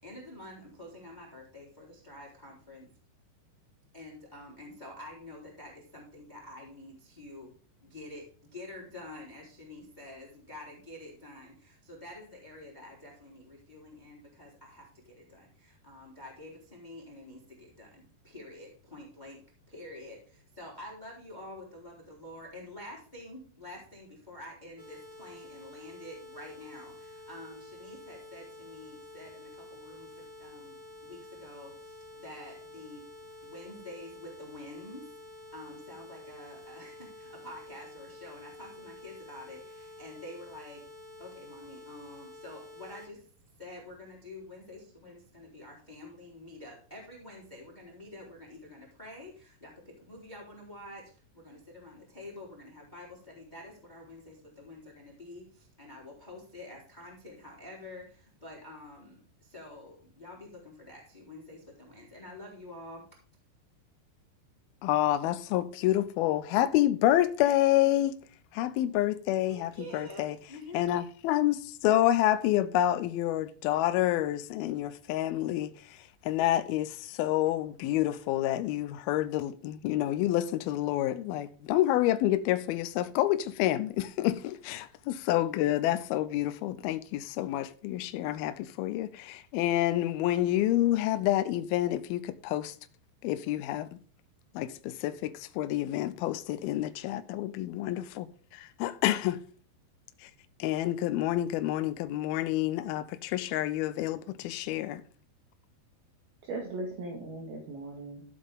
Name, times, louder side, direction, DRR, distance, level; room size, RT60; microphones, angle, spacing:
voice 1, 0.0-2.9 3.9-7.5 7.8-19.4 19.7-33.0 33.4-40.8 41.2-43.3 43.6-63.1 69.5-70.8, left 1 dB, 10° left, 3.5 m, -48 dB
sound 1, 24.8-43.1, left 2 dB, 10° right, 4.0 m, -49 dB
voice 2, 64.8-68.1 68.5-70.4 70.7-92.8 93.2-93.9 94.5-98.3 98.5-99.4 100.2-100.3 100.6-105.0, left 13 dB, 80° left, 2.3 m, -28 dB
voice 3, 106.4-108.2, right 2 dB, 65° right, 3.7 m, -38 dB
14.0 x 8.2 x 3.7 m
omnidirectional pair, 4.9 m